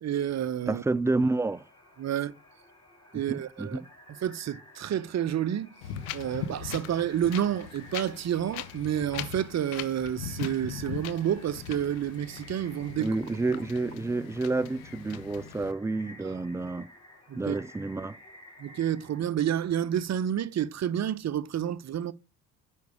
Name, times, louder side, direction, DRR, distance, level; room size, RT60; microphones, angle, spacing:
voice 1, 0.0-0.8 2.0-2.3 3.1-3.8 4.2-5.7 6.1-13.1 16.2-16.4 17.3-17.6 18.6-22.1, right 10 dB, 40° right, 0.8 m, -29 dB
voice 2, 0.7-1.6 3.1-3.9 13.0-16.9 17.3-18.2, right 3 dB, 5° right, 0.5 m, -29 dB
sound 1, 1.1-19.2, equal, 10° left, 4.9 m, -54 dB
Wind, 5.8-15.7, left 9 dB, 75° left, 0.9 m, -40 dB
9.3 x 5.5 x 5.0 m
figure-of-eight pair, 50°, 42 cm